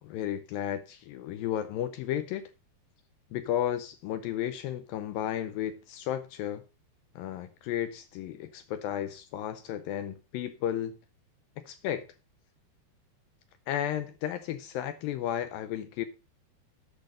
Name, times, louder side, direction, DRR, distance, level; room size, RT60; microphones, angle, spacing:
voice 1, 0.0-2.5 3.3-6.6 7.2-11.0 11.6-12.1 13.7-16.1, left 11 dB, 80° left, 2.1 m, -33 dB
9.8 x 6.2 x 5.0 m
omnidirectional pair, 4.6 m